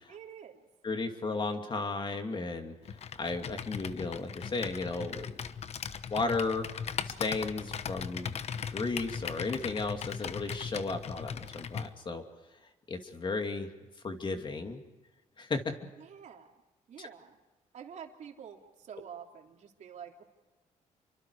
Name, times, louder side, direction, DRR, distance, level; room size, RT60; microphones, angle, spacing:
voice 1, 0.1-0.7 16.0-16.5 16.9-17.4 17.7-20.2, right 8 dB, 65° right, 2 dB, 3.2 m, -48 dB
voice 2, 0.8-5.3 6.1-6.6 7.0-8.3 8.7-12.2 12.9-13.7 14.0-14.8 15.4-15.7 17.0-17.1, left 3 dB, 35° left, 5 dB, 2.7 m, -34 dB
Computer keyboard, 2.9-11.9, left 7 dB, 50° left, 1.1 m, -39 dB
28.5 x 24.5 x 4.9 m, 1.2 s
cardioid pair, 95°, 13 cm